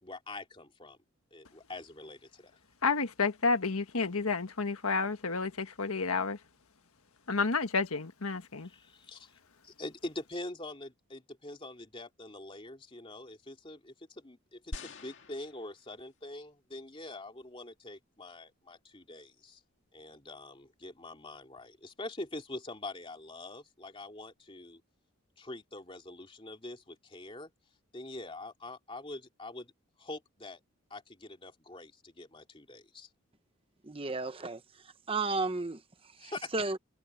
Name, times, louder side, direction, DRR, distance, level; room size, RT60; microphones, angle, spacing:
voice 1, 0.0-1.0 1.3-2.6 8.6-19.6 19.9-24.8 25.4-27.5 27.9-29.7 30.0-30.6 30.9-33.1 36.2-36.5, left 2 dB, 25° left, 2.9 m, -44 dB
voice 2, 2.8-6.4 7.3-8.7, left 4 dB, 80° left, 1.6 m, -30 dB
sound 1, 14.7-16.2 17.0-17.1, left 2 dB, 55° left, 2.3 m, -45 dB
voice 3, 33.8-34.6 35.1-35.8 36.2-36.8, right 3 dB, 25° right, 1.0 m, -33 dB
head